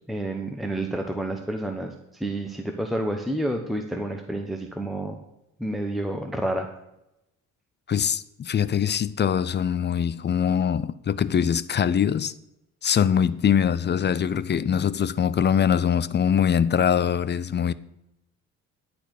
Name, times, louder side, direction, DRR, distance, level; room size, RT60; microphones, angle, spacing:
voice 1, 0.1-5.2 5.6-6.7, right 1 dB, ahead, 1.0 m, -29 dB
voice 2, 7.9-12.3 12.8-17.7, left 8 dB, 35° left, 0.5 m, -23 dB
11.5 x 4.3 x 8.1 m
cardioid pair, 90°, 30 cm